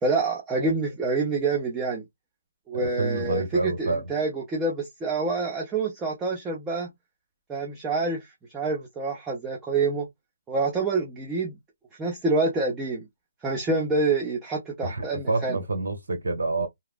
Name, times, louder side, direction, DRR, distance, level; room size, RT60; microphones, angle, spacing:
voice 1, 0.0-2.0 2.7-6.9 7.5-8.3 8.5-10.1 10.5-11.6 12.0-13.1 13.4-15.6, right 3 dB, 10° right, 0.7 m, -27 dB
voice 2, 2.7-4.0 14.8-16.7, right 2 dB, 70° right, 1.2 m, -28 dB
2.9 x 2.0 x 2.4 m
figure-of-eight pair, 145°, 0 cm